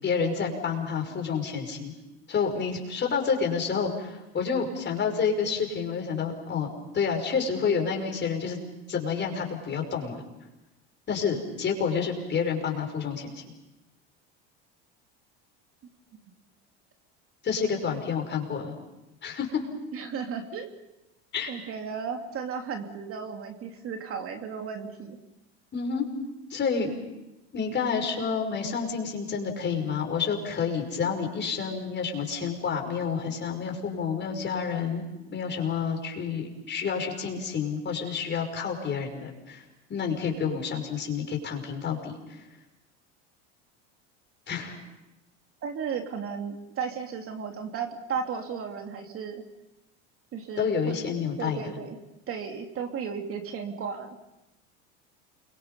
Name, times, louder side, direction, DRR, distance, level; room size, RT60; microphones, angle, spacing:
voice 1, 0.0-1.9 2.3-6.7 6.9-8.6 8.9-10.2 11.1-13.4 17.4-18.7 19.2-19.5 21.3-21.5 25.7-26.1 26.5-26.9 27.5-35.0 35.3-39.6 39.9-42.4 44.5-44.7 50.6-51.6, left 6 dB, 35° left, 3 dB, 5.9 m, -29 dB
voice 2, 19.9-20.7 21.5-25.2 45.6-49.4 50.3-51.0 51.4-52.0 52.3-54.2, right 6 dB, 45° right, 4 dB, 3.0 m, -34 dB
29.0 x 24.0 x 5.6 m, 0.96 s
supercardioid pair, 105°, 31 cm